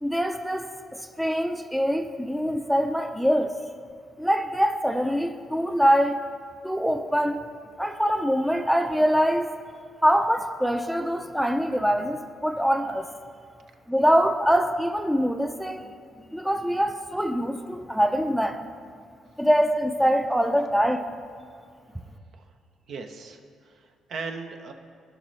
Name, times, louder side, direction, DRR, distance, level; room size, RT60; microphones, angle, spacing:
voice 1, 0.0-3.5 4.2-6.2 6.6-7.5 7.8-9.5 10.0-13.1 13.9-15.9 16.3-18.7 19.4-21.1, equal, ahead, 7 dB, 0.5 m, -24 dB
voice 2, 22.9-24.7, right 4 dB, 65° right, 5 dB, 0.7 m, -38 dB
15.5 x 5.3 x 3.2 m, 2.3 s
cardioid pair, 90°, 0 cm